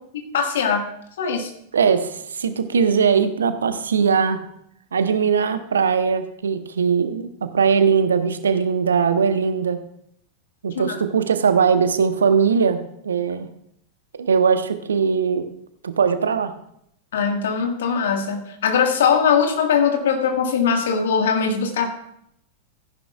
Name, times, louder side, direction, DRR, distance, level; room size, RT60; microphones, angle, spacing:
voice 1, 0.1-0.9 1.2-1.5 10.7-11.0 17.1-21.9, left 6 dB, 60° left, 4 dB, 1.6 m, -21 dB
voice 2, 1.7-4.4 4.9-9.8 10.6-13.5 14.2-15.4 15.8-16.5, right 6 dB, 70° right, 10 dB, 0.8 m, -20 dB
14.5 x 10.5 x 2.3 m, 0.74 s
figure-of-eight pair, 90°, 0 cm